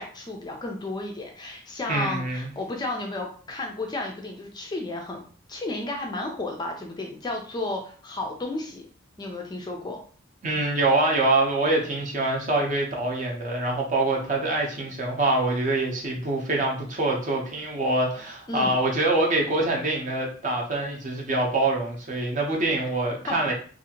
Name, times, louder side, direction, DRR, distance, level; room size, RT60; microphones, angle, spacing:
voice 1, 0.0-5.2 5.5-8.9 9.2-10.0 18.5-18.8 22.8-22.9 23.3-23.5, left 2 dB, 20° left, 1 dB, 0.3 m, -33 dB
voice 2, 1.9-2.5 10.4-23.5, right 2 dB, 40° right, 0 dB, 0.6 m, -25 dB
2.7 x 2.4 x 2.8 m, 0.44 s
head